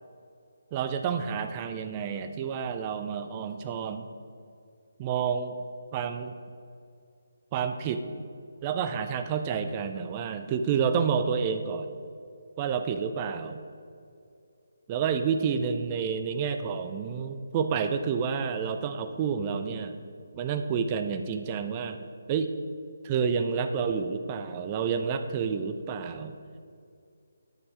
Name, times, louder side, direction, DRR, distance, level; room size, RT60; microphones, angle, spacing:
voice 1, 0.7-4.1 5.0-5.5 5.9-6.3 7.5-8.0 8.6-11.9 12.6-13.6 14.9-20.0 20.3-22.0 22.3-22.5 23.0-26.4, right 6 dB, 25° right, 8 dB, 0.4 m, -29 dB
9.6 x 5.4 x 4.6 m, 2.4 s
figure-of-eight pair, 145°, 0 cm